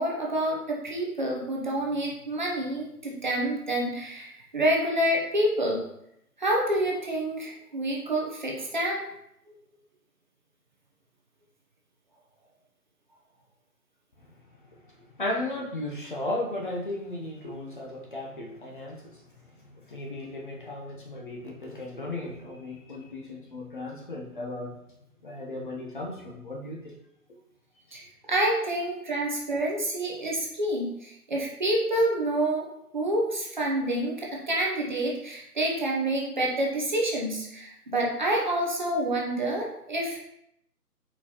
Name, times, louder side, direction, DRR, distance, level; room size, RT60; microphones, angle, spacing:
voice 1, 0.0-5.8 6.4-9.0 27.9-32.7 32.9-40.2, right 1 dB, 30° right, -2 dB, 0.7 m, -28 dB
voice 2, 14.6-19.3 19.5-24.8 25.2-26.9 27.9-28.0, left 2 dB, 35° left, -2 dB, 0.7 m, -36 dB
4.4 x 4.0 x 2.9 m, 0.77 s
figure-of-eight pair, 155°, 46 cm